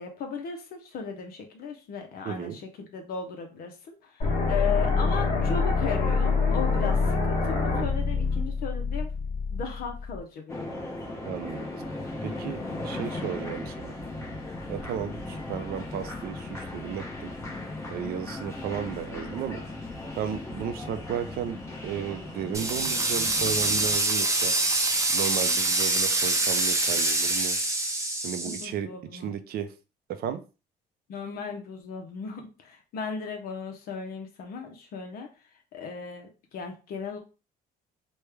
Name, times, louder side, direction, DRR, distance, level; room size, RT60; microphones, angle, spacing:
voice 1, 0.0-9.1 9.5-10.8 18.0-18.1 28.4-29.3 31.1-35.3 35.7-37.2, left 6 dB, 60° left, 3 dB, 0.7 m, -36 dB
voice 2, 2.2-2.6 11.2-11.7 12.2-13.9 14.7-17.3 17.9-19.6 20.2-24.5 25.1-27.6 28.2-29.7 30.1-30.4, right 9 dB, 65° right, 9 dB, 0.5 m, -34 dB
sound 1, 4.2-10.2, left 4 dB, 45° left, 1.2 m, -25 dB
sound 2, 10.5-23.9, left 2 dB, 15° left, 0.9 m, -37 dB
sound 3, 22.5-28.7, right 2 dB, 20° right, 0.6 m, -25 dB
3.1 x 2.2 x 3.3 m, 0.32 s
cardioid pair, 110°, 17 cm